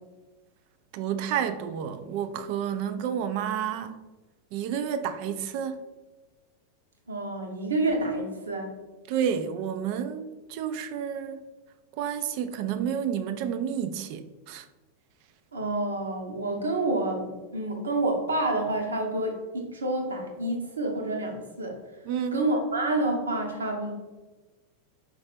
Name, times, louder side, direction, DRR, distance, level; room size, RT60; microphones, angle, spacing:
voice 1, 0.9-4.0 4.5-5.8 9.1-11.4 11.9-14.7 22.1-22.4, right 8 dB, 50° right, 0.3 m, -30 dB
voice 2, 7.1-8.7 15.5-21.8 22.3-23.9, right 2 dB, 75° right, 0.9 m, -28 dB
4.7 x 3.1 x 3.4 m
figure-of-eight pair, 90°, 0 cm